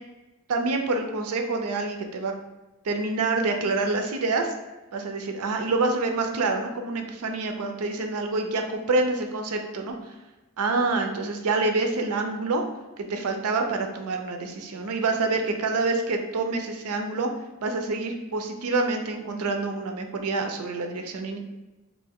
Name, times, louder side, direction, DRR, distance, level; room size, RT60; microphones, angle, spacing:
voice 1, 0.5-2.3 2.8-4.5 4.9-10.0 10.6-12.6 13.0-17.3 17.6-21.4, right 3 dB, 75° right, 5 dB, 0.5 m, -27 dB
3.3 x 2.5 x 3.5 m, 1.1 s
head